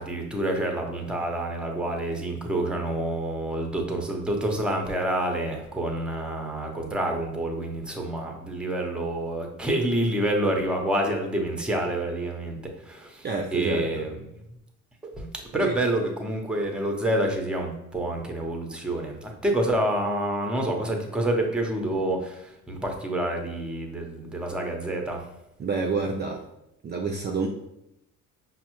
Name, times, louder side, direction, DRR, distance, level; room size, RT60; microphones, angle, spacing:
voice 1, 0.0-13.3 13.5-14.1 15.0-15.3 15.5-25.3, right 1 dB, 5° right, 2 dB, 0.7 m, -28 dB
voice 2, 13.2-14.1 15.5-15.7 25.6-26.5 26.8-27.5, right 4 dB, 35° right, 0 dB, 0.4 m, -28 dB
5.1 x 2.1 x 3.0 m, 0.83 s
cardioid pair, 90°, 30 cm